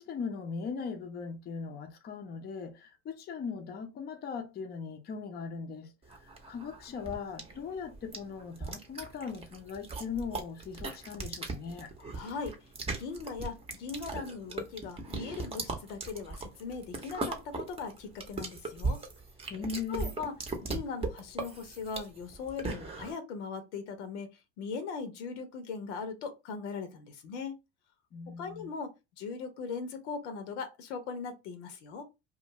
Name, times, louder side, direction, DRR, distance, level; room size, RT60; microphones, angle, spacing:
voice 1, 0.0-5.9 6.5-11.9 19.5-20.1 28.1-28.7, left 5 dB, 30° left, 0.5 m, -39 dB
sound 1, 6.1-23.1, right 3 dB, 15° right, 0.7 m, -38 dB
voice 2, 12.1-12.5 13.0-19.0 19.9-20.3 20.6-24.3 24.6-27.5 28.4-32.1, left 5 dB, 85° left, 0.8 m, -39 dB
2.5 x 2.4 x 2.9 m
supercardioid pair, 105°, 34 cm